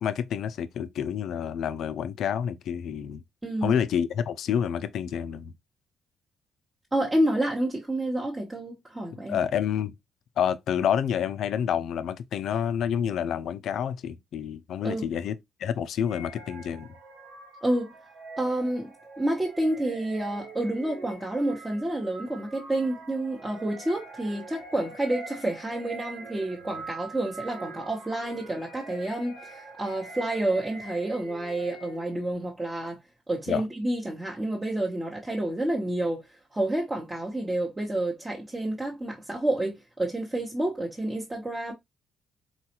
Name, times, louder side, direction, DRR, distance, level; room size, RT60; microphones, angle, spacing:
voice 1, 0.0-3.2 3.6-5.5 9.3-9.9 10.4-16.9 33.5-33.6, left 8 dB, 70° left, 0.4 m, -28 dB
voice 2, 3.4-3.7 6.9-9.4 14.8-15.0 17.6-17.9 18.4-18.9 19.2-33.0 33.3-41.7, right 1 dB, 15° right, 0.8 m, -29 dB
sound 1, 16.0-32.3, right 3 dB, 80° right, 1.9 m, -44 dB
4.1 x 2.3 x 2.8 m
cardioid pair, 90°, 0 cm